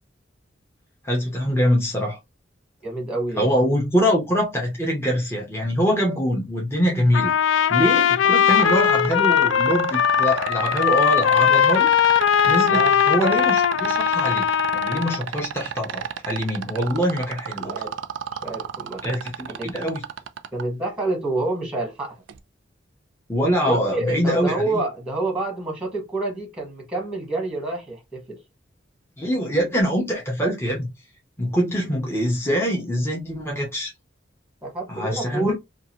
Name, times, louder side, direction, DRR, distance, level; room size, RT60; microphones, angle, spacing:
voice 1, 1.0-2.2 3.4-11.9 12.5-17.7 19.0-20.0 23.3-24.8 29.2-30.9 31.4-33.9 34.9-35.5, equal, 15° left, 0.7 m, -24 dB
voice 2, 2.8-3.5 12.7-12.9 17.6-17.9 18.4-19.0 19.5-19.7 20.5-22.2 23.6-28.4 34.6-35.5, right 2 dB, 5° right, 1.0 m, -28 dB
Trumpet, 7.1-15.2, left 8 dB, 90° left, 0.3 m, -19 dB
sound 1, 8.5-20.6 22.3-22.4, right 8 dB, 80° right, 0.4 m, -30 dB
2.8 x 2.4 x 2.8 m
head